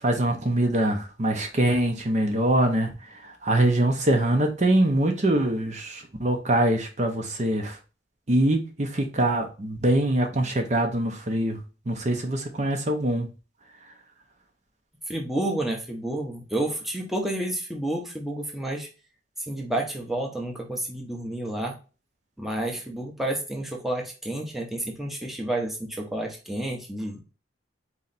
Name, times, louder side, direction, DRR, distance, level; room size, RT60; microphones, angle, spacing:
voice 1, 0.0-7.8 8.3-13.3, right 1 dB, 35° right, 4 dB, 0.7 m, -24 dB
voice 2, 15.1-18.9 19.5-21.7 22.4-27.2, right 1 dB, ahead, 0 dB, 0.8 m, -30 dB
4.3 x 3.1 x 3.9 m, 0.33 s
head